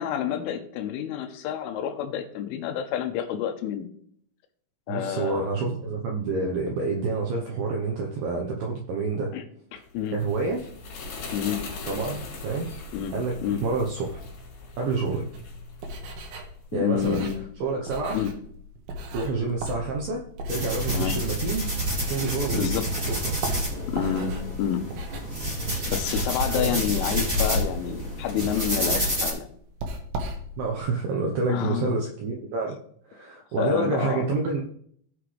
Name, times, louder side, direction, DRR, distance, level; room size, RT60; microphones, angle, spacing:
voice 1, 0.0-3.9 4.9-5.5 9.3-9.4 9.7-10.2 11.3-11.6 12.9-13.1 13.4-13.6 16.7-17.4 18.1-18.3 20.9-21.2 22.5-22.9 23.9-24.8 25.9-29.5 31.5-32.0 33.6-34.3, left 9 dB, 85° left, 7 dB, 3.3 m, -28 dB
voice 2, 4.9-9.3 10.1-10.6 11.9-12.7 13.1-14.2 14.8-15.3 16.7-17.2 17.6-18.2 19.1-21.7 22.1-22.7 23.1-23.4 26.6-26.8 30.6-32.8 33.0-34.6, right 3 dB, 90° right, 1 dB, 2.0 m, -28 dB
sound 1, 9.9-16.5, left 3 dB, 55° left, 3.9 m, -40 dB
sound 2, 15.3-22.6 23.0-30.8, equal, 65° right, 2.6 m, -37 dB
sound 3, 20.5-29.3, equal, 15° right, 2.4 m, -29 dB
16.0 x 5.9 x 3.3 m, 0.63 s
omnidirectional pair, 5.7 m